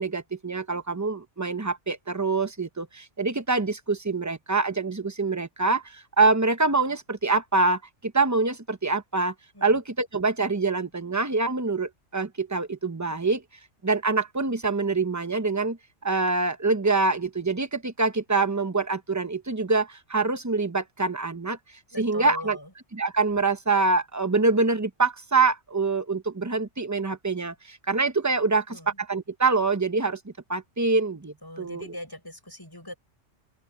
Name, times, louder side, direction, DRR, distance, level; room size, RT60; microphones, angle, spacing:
voice 1, 0.0-9.3 9.6-13.4 13.8-21.6 22.0-22.6 22.9-28.8 29.1-31.8, right 3 dB, 15° right, 0.8 m, -25 dB
voice 2, 21.9-22.7 28.5-29.0 31.4-33.0, left 1 dB, 15° left, 6.7 m, -40 dB
open air
omnidirectional pair, 1.3 m